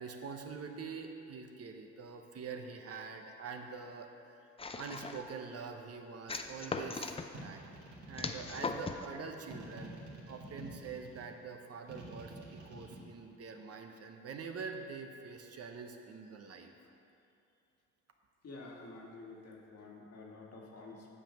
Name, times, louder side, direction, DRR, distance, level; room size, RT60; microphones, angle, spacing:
voice 1, 0.0-4.4 4.8-7.6 8.1-9.9 10.3-16.7, right 5 dB, 50° right, 4 dB, 0.9 m, -45 dB
sound 1, 4.6-5.3 6.3-7.3 8.2-9.1, left 4 dB, 20° left, 0.5 m, -39 dB
sound 2, 7.3-8.9 9.5-11.2 11.9-13.0, right 2 dB, 70° right, 2.3 m, -49 dB
voice 2, 18.4-21.1, left 3 dB, 55° left, -2 dB, 1.8 m, -50 dB
8.8 x 5.2 x 7.5 m, 2.7 s
cardioid pair, 90°, 30 cm